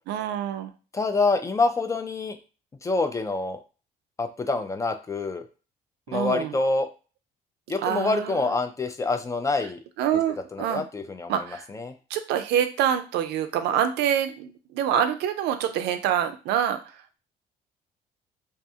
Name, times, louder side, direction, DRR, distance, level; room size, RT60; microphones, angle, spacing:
voice 1, 0.1-0.7 6.1-6.5 7.8-8.5 10.0-10.8 11.3-11.7 12.1-17.2, right 9 dB, 80° right, 8 dB, 0.4 m, -26 dB
voice 2, 0.9-2.4 2.8-3.6 4.2-5.5 6.1-6.9 7.7-9.8 10.5-11.3 11.7-11.9, left 3 dB, 20° left, 8 dB, 0.3 m, -26 dB
2.4 x 2.3 x 2.7 m, 0.33 s
cardioid pair, 110°, 17 cm